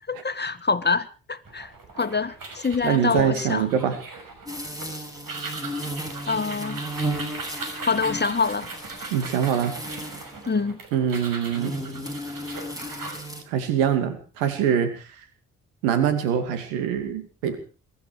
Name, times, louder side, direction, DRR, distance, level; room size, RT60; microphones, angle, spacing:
voice 1, 0.1-1.7 2.0-3.7 6.3-6.8 7.8-8.7 10.5-10.8, left 4 dB, 25° left, 1.8 m, -25 dB
sound 1, 1.4-13.2, right 3 dB, 55° right, 6.0 m, -39 dB
voice 2, 2.8-4.0 9.1-9.7 10.9-11.7 13.5-15.1 15.8-17.6, right 8 dB, 85° right, 2.6 m, -24 dB
sound 2, 4.5-10.4 11.5-13.4, right 1 dB, 10° right, 6.2 m, -34 dB
23.5 x 13.0 x 4.8 m
hypercardioid pair, 45°, 39 cm